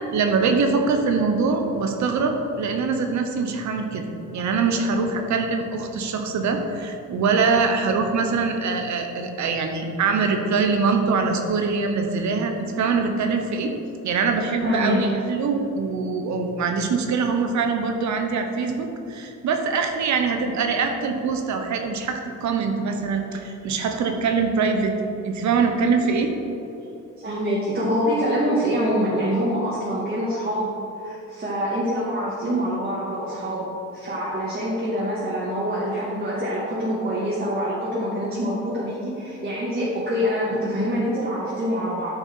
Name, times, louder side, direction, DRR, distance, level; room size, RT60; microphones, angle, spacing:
voice 1, 0.1-4.1 4.3-13.7 14.0-24.9 25.2-26.3, right 4 dB, 70° right, 5 dB, 1.0 m, -23 dB
voice 2, 14.6-15.0 27.2-30.7 31.0-33.7 33.9-42.1, equal, 30° right, -8 dB, 1.9 m, -25 dB
9.5 x 5.5 x 4.6 m, 2.8 s
cardioid pair, 90°, 30 cm